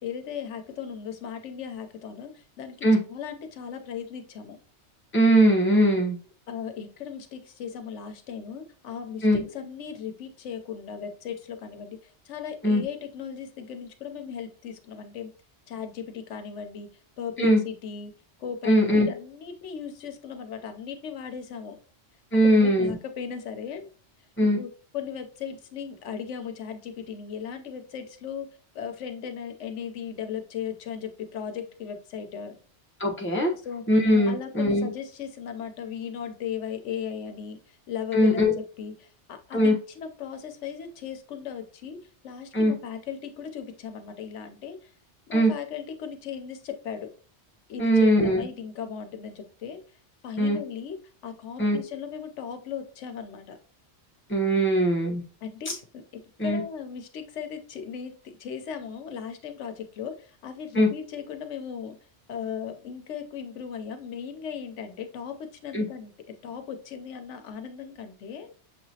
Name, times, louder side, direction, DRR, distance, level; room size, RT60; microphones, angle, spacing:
voice 1, 0.0-4.6 6.5-15.3 15.7-16.9 17.2-18.1 18.4-21.8 22.4-23.9 24.4-24.7 24.9-28.5 28.7-32.6 33.6-33.8 34.3-38.5 38.8-42.0 42.2-44.9 45.3-47.1 47.7-49.8 50.2-51.0 51.2-53.6 55.4-56.0 56.4-62.0 62.3-68.5, left 7 dB, 90° left, 7 dB, 1.0 m, -37 dB
voice 2, 5.1-6.2 9.2-9.4 12.6-12.8 17.4-17.6 18.6-19.1 22.3-22.9 24.4-24.6 33.0-33.5 33.9-34.9 38.1-38.5 39.5-39.8 42.5-42.7 45.3-45.5 47.8-48.4 50.4-50.6 51.6-51.8 54.3-55.2 55.7-55.8 56.4-56.6 60.7-60.9 65.7-65.9, equal, 10° left, -3 dB, 0.9 m, -20 dB
6.6 x 2.9 x 2.7 m, 0.40 s
omnidirectional pair, 1.2 m